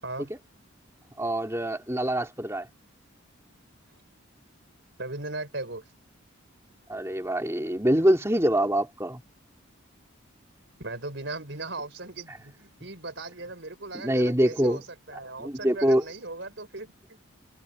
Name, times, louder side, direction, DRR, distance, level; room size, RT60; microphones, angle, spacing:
voice 1, 1.2-2.7 6.9-9.2 13.9-14.8 15.4-16.0, equal, 15° right, 2.7 m, -24 dB
voice 2, 5.0-5.8 10.8-14.8 15.1-17.3, right 2 dB, 55° right, 4.9 m, -38 dB
head